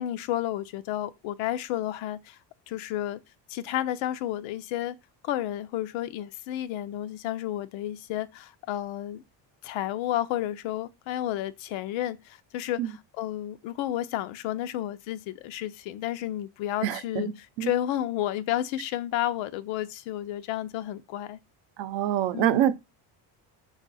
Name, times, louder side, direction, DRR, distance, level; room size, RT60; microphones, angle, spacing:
voice 1, 0.0-2.4 2.7-3.2 3.5-5.0 5.2-9.2 9.6-21.4 22.3-22.7, left 13 dB, 80° left, 0.6 m, -31 dB
voice 2, 16.8-17.3 17.6-17.7 21.8-22.7, right 11 dB, 75° right, 0.7 m, -25 dB
5.4 x 2.4 x 4.0 m
cardioid pair, 165°, 46 cm